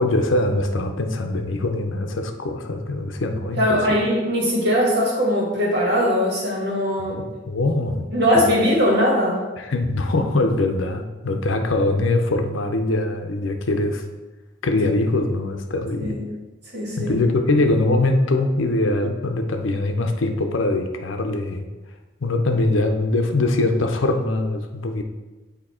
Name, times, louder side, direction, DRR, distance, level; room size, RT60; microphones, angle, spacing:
voice 1, 0.0-4.0 7.2-8.1 9.6-14.0 14.6-16.2 17.0-21.7 22.2-25.0, left 2 dB, 80° left, 5 dB, 0.6 m, -22 dB
voice 2, 3.6-7.2 8.1-9.4 16.0-16.2 16.7-17.2, equal, 55° right, -3 dB, 1.8 m, -20 dB
8.5 x 2.8 x 4.3 m, 1.2 s
head